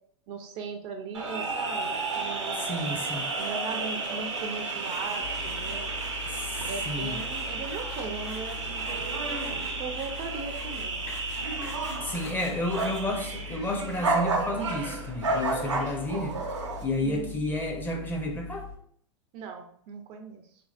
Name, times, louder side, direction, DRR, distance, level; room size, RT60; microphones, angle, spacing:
voice 1, 0.3-2.9 3.4-5.9 6.7-9.4 9.8-11.0 17.0-17.4 19.3-20.4, right 4 dB, 40° right, 5 dB, 0.4 m, -38 dB
sound 1, 1.1-16.8, right 3 dB, 85° right, 0.6 m, -32 dB
voice 2, 2.5-3.3 6.3-7.2 12.0-16.4 16.8-18.7, left 1 dB, 10° left, 2 dB, 0.5 m, -31 dB
sound 2, 4.8-13.0, left 2 dB, 75° left, 0.9 m, -47 dB
sound 3, 5.2-18.8, left 4 dB, 60° left, 1.2 m, -42 dB
2.8 x 2.6 x 2.3 m, 0.63 s
hypercardioid pair, 100°, 15 cm